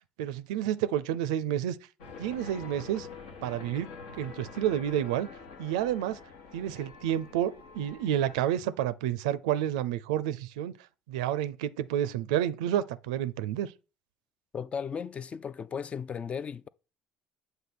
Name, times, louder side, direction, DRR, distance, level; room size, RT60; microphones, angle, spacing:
voice 1, 0.2-1.8 2.2-3.1 3.4-5.3 5.6-6.2 6.5-10.7 11.1-13.7, right 11 dB, 75° right, 0.4 m, -30 dB
sound 1, 2.0-8.4, left 4 dB, 75° left, 1.2 m, -46 dB
voice 2, 14.5-16.7, left 6 dB, 35° left, 0.4 m, -36 dB
7.9 x 2.7 x 5.9 m
hypercardioid pair, 60°, 4 cm